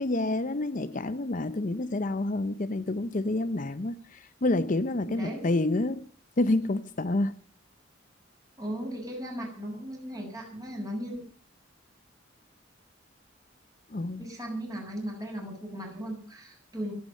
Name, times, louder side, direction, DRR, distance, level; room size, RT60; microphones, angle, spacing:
voice 1, 0.0-6.1 6.4-7.3 13.9-14.3, left 2 dB, 45° left, 0.7 m, -28 dB
voice 2, 5.1-5.5 8.6-11.2 14.2-16.9, equal, 20° right, 7.6 m, -37 dB
27.0 x 9.5 x 5.5 m
head